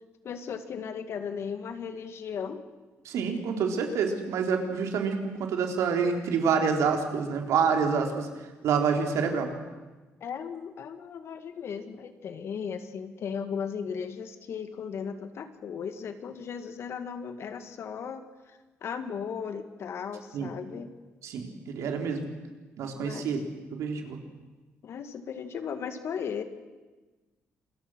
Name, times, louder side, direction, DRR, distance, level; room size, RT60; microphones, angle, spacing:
voice 1, 0.2-2.6 10.2-20.9 23.0-23.3 24.8-26.4, left 7 dB, 60° left, 9 dB, 2.2 m, -36 dB
voice 2, 3.1-8.3 8.6-9.5 20.3-20.5 21.2-22.3 22.8-23.4 23.7-24.2, right 6 dB, 80° right, 3 dB, 3.8 m, -27 dB
28.0 x 22.0 x 6.4 m, 1.2 s
cardioid pair, 110°, 5 cm